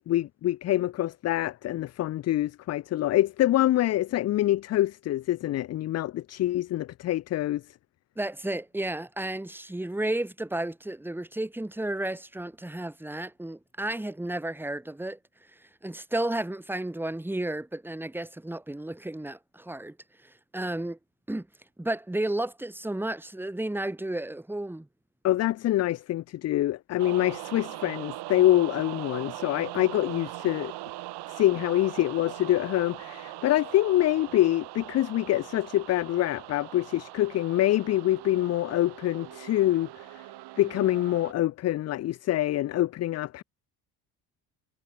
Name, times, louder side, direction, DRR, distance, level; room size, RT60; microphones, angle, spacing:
voice 1, 0.0-7.6 25.2-30.7 31.3-40.2 40.6-43.4, left 14 dB, 35° left, 0.4 m, -25 dB
voice 2, 8.2-15.2 15.8-19.9 20.2-21.0 21.3-21.5 21.8-24.9, right 1 dB, 5° right, 1.5 m, -32 dB
sound 1, 27.0-41.3, right 17 dB, 60° right, 1.0 m, -41 dB
hypercardioid pair, 65°, 45 cm